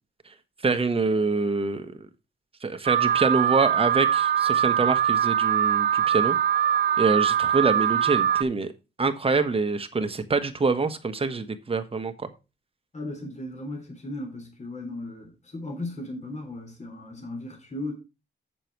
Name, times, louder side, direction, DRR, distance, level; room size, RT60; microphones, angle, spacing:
voice 1, 0.6-2.1 2.6-6.4 7.0-8.7 9.0-12.3, right 4 dB, 30° right, 1.3 m, -25 dB
Alarm, 2.9-8.4, right 9 dB, 55° right, 0.6 m, -22 dB
voice 2, 12.9-17.9, left 1 dB, 40° left, 3.6 m, -36 dB
7.7 x 7.0 x 4.5 m
cardioid pair, 90°, 19 cm